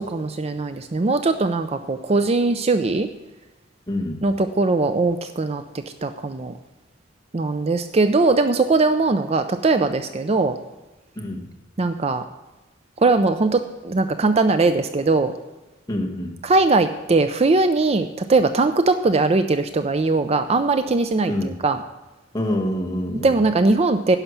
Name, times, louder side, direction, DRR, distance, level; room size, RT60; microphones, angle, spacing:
voice 1, 0.0-3.1 4.2-5.6 6.0-6.5 7.3-10.6 11.8-12.2 13.0-15.3 16.4-21.8 23.2-24.2, right 3 dB, 35° right, 9 dB, 0.4 m, -20 dB
voice 2, 3.9-4.2 11.2-11.4 15.9-16.3 21.3-21.5 22.3-23.3, left 1 dB, 20° left, -1 dB, 1.6 m, -26 dB
11.5 x 5.7 x 8.1 m, 1.1 s
head